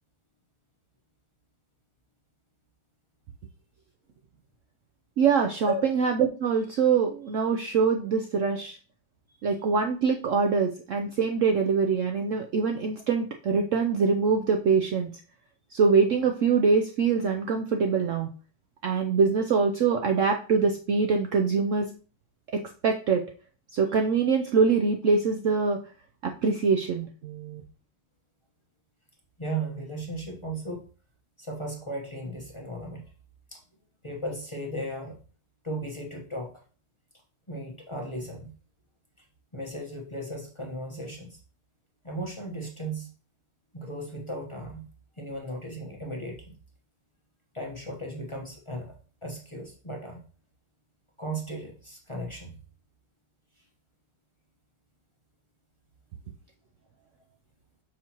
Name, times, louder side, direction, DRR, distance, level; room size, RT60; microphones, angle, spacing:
voice 1, 5.2-8.8 9.4-15.1 15.7-18.3 18.8-21.9 22.5-23.2 23.7-25.8 26.2-27.6, right 5 dB, 85° right, 4 dB, 0.6 m, -24 dB
voice 2, 29.4-30.9 31.4-33.0 33.5-33.6 34.0-35.2 35.6-36.5 37.5-38.5 39.5-41.4 42.0-43.1 43.7-44.9 45.2-46.5 47.5-48.9 49.2-50.2 51.2-52.6, right 1 dB, 20° left, 0 dB, 0.8 m, -36 dB
6.1 x 5.8 x 2.9 m, 0.39 s
omnidirectional pair, 2.0 m